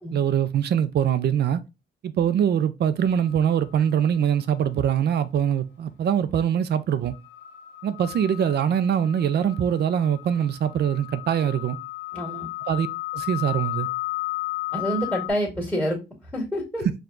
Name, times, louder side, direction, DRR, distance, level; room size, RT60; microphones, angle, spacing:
voice 1, 0.1-1.6 2.0-7.1 7.8-11.8 12.7-12.9 13.1-13.9, right 9 dB, 55° right, 0.5 m, -23 dB
sound 1, 3.0-3.3 7.1-15.3, left 21 dB, 65° left, 1.0 m, -34 dB
voice 2, 12.1-12.5 14.7-16.0 16.3-16.9, equal, ahead, 2.0 m, -27 dB
4.6 x 2.4 x 3.7 m
cardioid pair, 90°, 20 cm